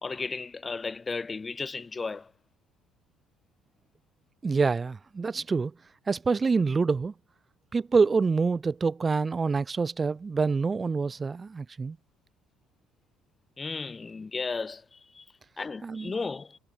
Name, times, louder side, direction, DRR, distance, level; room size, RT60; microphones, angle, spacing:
voice 1, 0.0-2.3 13.6-15.2 15.6-16.6, left 4 dB, 20° left, 2.0 m, -34 dB
voice 2, 4.4-5.7 6.1-7.1 7.7-12.0 15.8-16.1, right 4 dB, 25° right, 2.0 m, -26 dB
cardioid pair, 115°, 0 cm